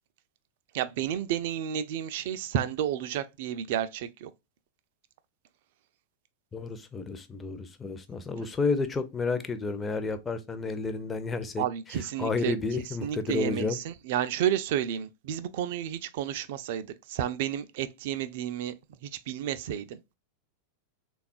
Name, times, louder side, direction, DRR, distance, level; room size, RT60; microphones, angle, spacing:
voice 1, 0.7-4.3 11.6-12.5 13.0-18.7 19.0-20.0, right 10 dB, 50° right, 0.3 m, -31 dB
voice 2, 6.5-11.6 11.9-13.8, left 4 dB, 15° left, 0.4 m, -31 dB
3.4 x 2.3 x 2.4 m
figure-of-eight pair, 90°, 0 cm